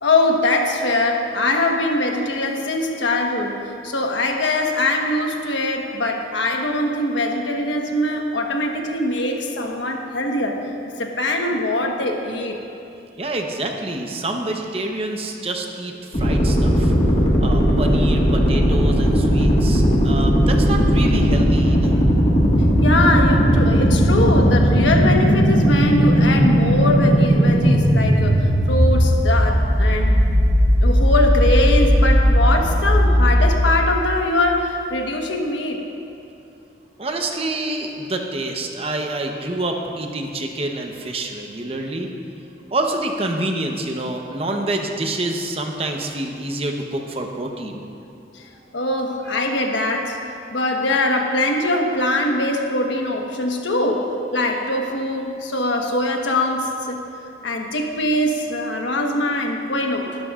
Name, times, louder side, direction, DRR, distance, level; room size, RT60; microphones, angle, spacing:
voice 1, 0.0-10.6 10.8-12.6 22.8-30.2 30.8-35.8 48.7-50.2 50.5-57.0 57.4-60.2, left 1 dB, 90° left, 2 dB, 1.2 m, -22 dB
voice 2, 13.2-16.9 17.4-22.1 37.0-42.1 42.7-47.8, right 2 dB, 35° right, 3 dB, 0.9 m, -27 dB
sound 1, 16.1-33.5, equal, 40° left, 1.6 m, -16 dB
19.0 x 12.0 x 2.5 m, 2.7 s
head